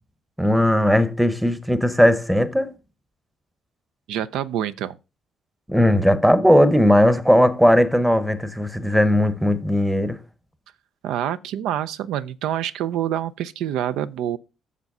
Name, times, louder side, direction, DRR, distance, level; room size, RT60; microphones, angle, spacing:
voice 1, 0.4-2.7 5.7-10.2, equal, 5° right, 0.8 m, -18 dB
voice 2, 4.1-5.0 11.0-14.4, right 11 dB, 90° right, 0.5 m, -26 dB
7.2 x 6.7 x 5.3 m
cardioid pair, 130°, 0 cm